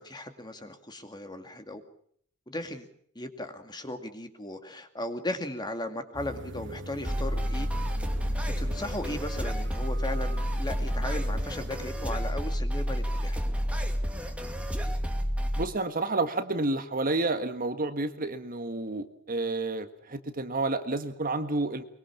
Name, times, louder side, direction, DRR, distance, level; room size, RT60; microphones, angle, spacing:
voice 1, 0.0-1.8 2.5-2.9 3.2-7.7 8.6-13.4, left 1 dB, 20° left, 7 dB, 2.4 m, -37 dB
sound 1, 6.1-11.9, equal, 60° right, 2.2 m, -43 dB
sound 2, 7.0-15.7, equal, 5° right, 2.4 m, -30 dB
voice 2, 15.6-21.8, right 2 dB, 40° right, 8 dB, 1.6 m, -30 dB
23.5 x 22.5 x 7.1 m, 0.63 s
head